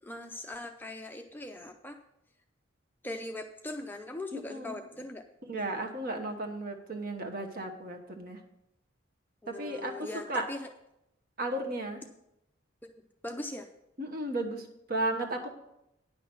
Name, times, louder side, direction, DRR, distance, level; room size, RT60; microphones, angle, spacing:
voice 1, 0.0-2.0 3.0-5.2 9.4-10.7 13.2-13.7, left 2 dB, 10° left, 4 dB, 0.5 m, -40 dB
voice 2, 4.3-4.8 5.5-8.4 9.5-10.4 11.4-12.0 14.0-15.5, right 1 dB, 45° right, 3 dB, 1.2 m, -34 dB
10.0 x 6.0 x 6.1 m, 0.83 s
head